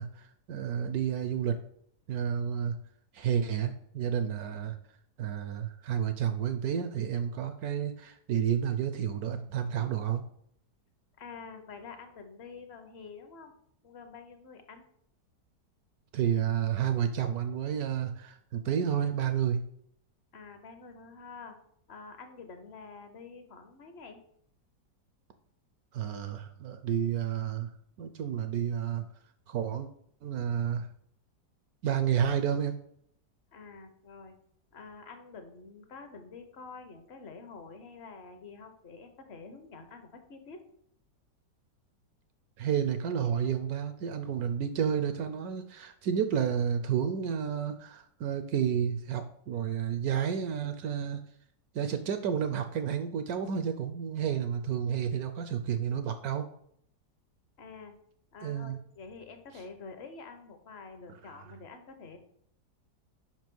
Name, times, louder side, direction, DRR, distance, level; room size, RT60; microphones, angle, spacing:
voice 1, 0.0-1.6 2.1-2.7 3.1-4.8 5.2-10.3 16.1-19.6 25.9-27.7 28.0-29.1 29.5-29.9 30.2-30.9 31.8-32.8 42.6-51.2 51.7-56.5 58.4-58.8, right 8 dB, 70° right, 8 dB, 0.9 m, -30 dB
voice 2, 11.2-13.5 13.8-14.8 20.3-21.6 21.9-24.2 33.5-34.4 34.7-40.6 57.6-57.9 58.3-62.2, left 4 dB, 50° left, 6 dB, 0.8 m, -47 dB
5.4 x 4.5 x 6.0 m, 0.68 s
omnidirectional pair, 1.9 m